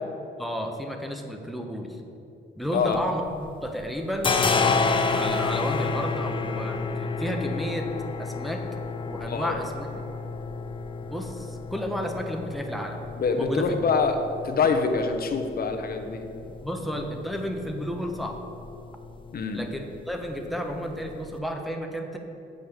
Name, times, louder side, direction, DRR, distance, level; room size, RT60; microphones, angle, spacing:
voice 1, 0.4-2.0 2.6-4.4 5.1-7.9 8.2-8.6 9.1-9.9 11.0-13.0 13.4-13.8 16.5-18.4 19.5-22.2, equal, ahead, 2 dB, 1.1 m, -32 dB
sound 1, 2.7-3.6 3.8-21.4, left 4 dB, 25° left, 0.6 m, -31 dB
voice 2, 13.2-16.2 19.3-19.6, left 5 dB, 50° left, 5 dB, 1.0 m, -25 dB
8.0 x 5.3 x 6.6 m, 2.8 s
cardioid pair, 90°, 20 cm